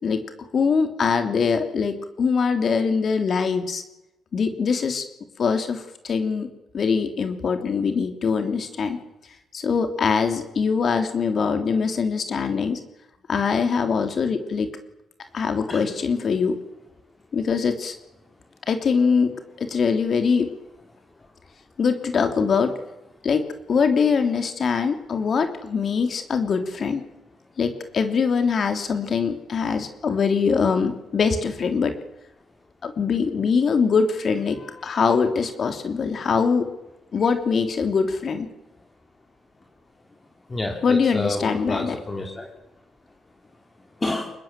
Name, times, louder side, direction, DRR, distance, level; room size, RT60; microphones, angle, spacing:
voice 1, 0.5-3.8 4.3-5.0 5.4-6.5 6.7-9.0 9.5-12.8 13.3-14.7 15.3-16.5 17.3-18.0 18.7-20.5 21.8-22.8 23.2-23.4 23.7-27.0 27.6-31.9 32.8-36.7 37.1-38.5 40.8-41.9, left 5 dB, 50° left, 7 dB, 3.2 m, -23 dB
voice 2, 40.5-42.5 44.0-44.3, left 2 dB, 25° left, 1 dB, 4.0 m, -29 dB
24.5 x 20.5 x 7.6 m, 0.94 s
cardioid pair, 90°, 0 cm